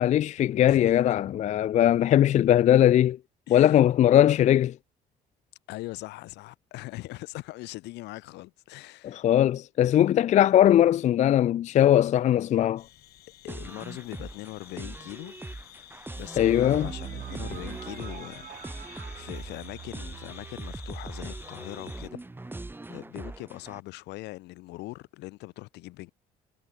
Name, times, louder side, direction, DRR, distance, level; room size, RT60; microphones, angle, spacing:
voice 1, 0.0-3.2 3.5-4.8 9.0-12.8 16.4-16.9, left 11 dB, 45° left, 0.4 m, -20 dB
voice 2, 0.7-1.2 3.5-4.0 5.7-9.3 13.4-15.3 16.2-18.5 18.8-26.1, left 20 dB, 90° left, 3.2 m, -41 dB
sound 1, 12.8-22.1, left 14 dB, 70° left, 3.8 m, -50 dB
sound 2, 13.5-23.8, right 2 dB, 10° right, 2.3 m, -41 dB
sound 3, 16.3-22.3, right 11 dB, 60° right, 5.2 m, -43 dB
cardioid pair, 110°, 17 cm